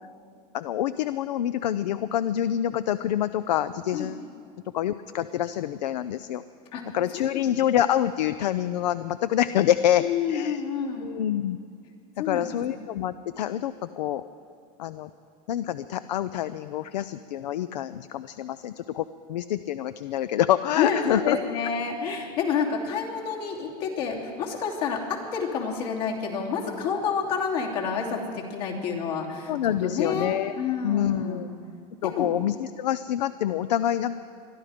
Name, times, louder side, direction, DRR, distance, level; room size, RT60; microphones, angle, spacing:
voice 1, 0.5-4.2 4.7-6.4 6.9-10.6 11.0-11.6 12.2-14.2 14.8-15.1 15.5-21.4 29.5-30.5 30.8-31.5 32.0-34.3, left 11 dB, 85° left, 13 dB, 0.5 m, -26 dB
voice 2, 6.7-7.5 10.0-11.1 12.2-12.8 20.8-31.5 32.0-32.3, left 6 dB, 70° left, -2 dB, 3.2 m, -29 dB
22.0 x 12.5 x 5.0 m, 2.4 s
hypercardioid pair, 110°, 21 cm